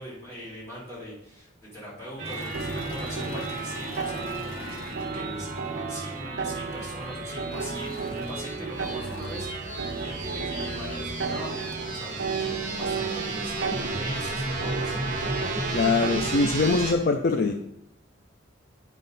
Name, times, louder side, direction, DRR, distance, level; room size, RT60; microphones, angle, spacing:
voice 1, 0.0-15.8, equal, 15° left, -9 dB, 3.4 m, -41 dB
sound 1, 2.2-16.9, right 2 dB, 40° right, 1.3 m, -33 dB
Engine / Mechanisms, 2.3-6.1 7.5-10.4 11.1-11.2 11.4-12.0, left 2 dB, 85° left, 1.3 m, -45 dB
sound 2, 2.5-16.7, right 5 dB, 65° right, 0.6 m, -35 dB
voice 2, 15.7-17.5, left 3 dB, 50° left, 5 dB, 0.4 m, -23 dB
9.3 x 5.4 x 4.1 m, 0.80 s
head